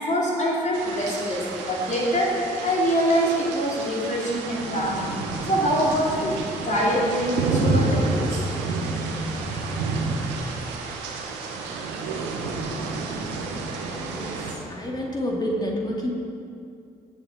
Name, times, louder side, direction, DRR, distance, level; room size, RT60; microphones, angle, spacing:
voice 1, 0.0-8.4, equal, 40° left, -4 dB, 2.6 m, -24 dB
sound 1, 0.7-14.5, right 3 dB, 70° right, 1.4 m, -29 dB
voice 2, 13.9-16.1, equal, 20° left, -2 dB, 2.8 m, -29 dB
19.0 x 7.7 x 3.8 m, 2.4 s
figure-of-eight pair, 40°, 20 cm